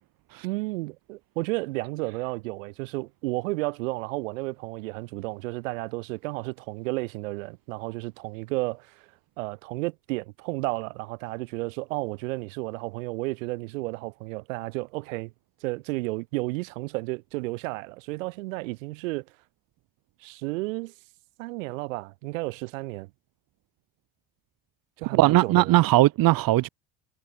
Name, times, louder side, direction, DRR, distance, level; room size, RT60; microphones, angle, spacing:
voice 1, 0.4-15.3 15.6-19.4 20.2-20.9 21.4-23.1 25.0-25.8, right 23 dB, 85° right, 3.4 m, -32 dB
voice 2, 25.2-26.7, right 17 dB, 60° right, 1.7 m, -19 dB
supercardioid pair, 75°, 38 cm